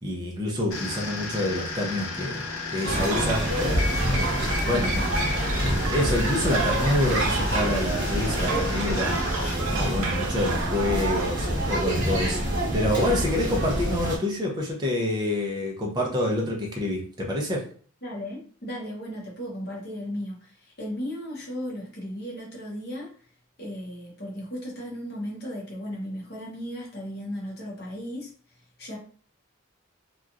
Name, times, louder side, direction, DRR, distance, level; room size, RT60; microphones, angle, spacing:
voice 1, 0.0-2.4 2.7-3.5 4.2-5.4 5.8-9.2 9.8-17.6, left 1 dB, 20° right, -2 dB, 0.5 m, -27 dB
sound 1, 0.7-9.5, left 3 dB, 75° left, 0.7 m, -35 dB
sound 2, 2.8-14.2, right 1 dB, 60° right, 0.9 m, -27 dB
sound 3, 2.8-11.3, right 3 dB, 80° right, 0.6 m, -32 dB
voice 2, 18.0-23.1 23.6-28.3 28.8-29.0, equal, 50° left, -2 dB, 0.8 m, -35 dB
2.8 x 2.3 x 2.4 m, 0.44 s
head